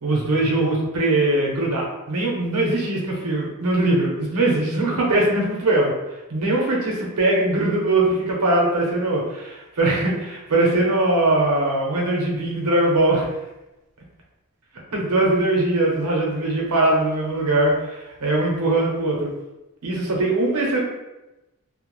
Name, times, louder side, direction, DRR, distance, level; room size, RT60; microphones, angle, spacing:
voice 1, 0.0-5.9 6.3-13.3 14.9-17.7 18.2-19.3 19.8-20.8, right 2 dB, 90° right, -2 dB, 0.7 m, -21 dB
2.2 x 2.0 x 3.0 m, 1.0 s
head